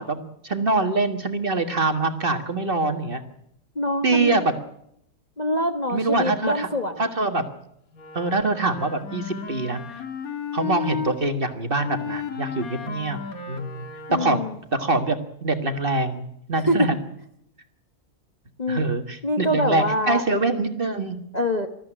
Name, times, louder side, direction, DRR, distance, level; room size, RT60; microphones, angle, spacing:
voice 1, 0.0-3.2 4.0-4.5 5.9-6.7 7.0-7.5 8.1-9.8 10.5-13.2 13.5-13.9 14.1-14.4 14.7-17.0 18.7-21.2, right 3 dB, 35° right, 7 dB, 1.7 m, -24 dB
voice 2, 3.7-4.4 5.4-7.1 14.1-14.6 16.7-16.9 18.6-18.8 19.2-20.2 21.3-21.7, left 1 dB, 30° left, 5 dB, 1.2 m, -24 dB
Wind instrument woodwind instrument, 7.9-11.2 11.8-14.6, left 7 dB, 65° left, 2.0 m, -34 dB
20.5 x 14.0 x 10.0 m, 0.75 s
omnidirectional pair, 1.7 m